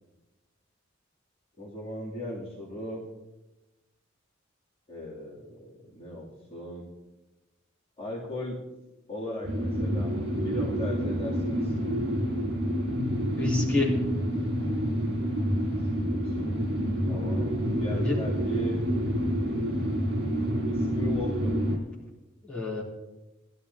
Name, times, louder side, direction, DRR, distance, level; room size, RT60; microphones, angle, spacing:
voice 1, 1.6-3.0 4.9-6.9 8.0-8.7 9.1-10.1 10.4-11.9 15.7-16.6 17.0-17.5 17.8-18.8 20.6-21.7, left 1 dB, 30° left, -7 dB, 2.9 m, -38 dB
sound 1, 9.4-21.8, equal, 70° right, 3.6 m, -28 dB
voice 2, 13.4-14.0 17.9-18.2 22.4-22.8, left 2 dB, 5° left, -7 dB, 3.3 m, -28 dB
19.5 x 12.5 x 2.9 m, 1.0 s
head